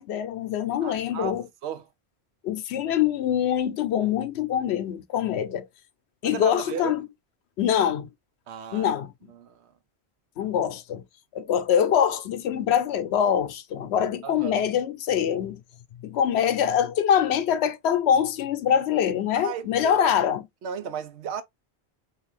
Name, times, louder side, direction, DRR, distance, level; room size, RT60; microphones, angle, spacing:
voice 1, 0.0-1.5 2.4-5.7 6.2-7.1 7.6-8.1 8.7-9.1 10.4-11.0 11.3-15.6 16.0-20.4, left 9 dB, 85° left, 0.9 m, -24 dB
voice 2, 0.8-1.9 6.2-7.0 8.5-9.0 9.3-9.7 14.2-14.6 19.3-20.1 20.6-21.4, right 8 dB, 90° right, 0.9 m, -35 dB
3.1 x 2.4 x 3.1 m
omnidirectional pair, 1.1 m